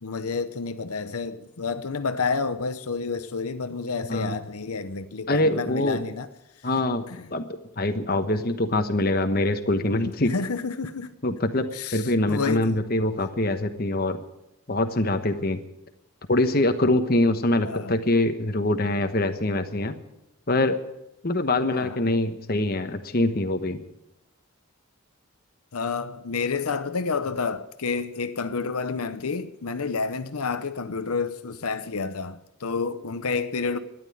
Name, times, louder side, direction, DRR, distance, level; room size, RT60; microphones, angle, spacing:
voice 1, 0.0-6.3 7.1-7.3 10.2-11.1 11.7-12.8 17.6-17.9 21.7-22.0 25.7-33.8, left 4 dB, 85° left, 0.8 m, -29 dB
voice 2, 5.3-6.0 6.6-7.0 7.3-10.3 11.2-14.2 14.7-15.6 16.3-19.9 20.5-20.8 21.2-23.8, left 2 dB, 45° left, 1.1 m, -24 dB
13.0 x 10.5 x 9.9 m
head